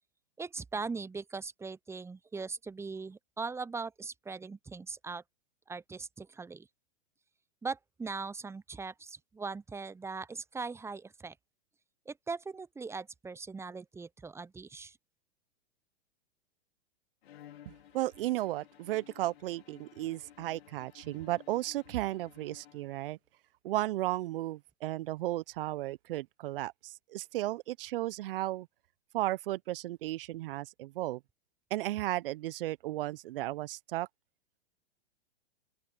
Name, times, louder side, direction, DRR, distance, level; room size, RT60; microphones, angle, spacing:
voice 1, 0.4-5.2 5.7-6.7 7.6-11.3 12.1-15.0, right 4 dB, 10° right, 0.8 m, -40 dB
Bowed string instrument, 17.2-23.2, left 11 dB, 65° left, 4.7 m, -56 dB
voice 2, 17.6-23.2 23.6-28.7 29.1-31.2 31.7-34.1, right 16 dB, 60° right, 1.1 m, -34 dB
open air
hypercardioid pair, 110°, 32 cm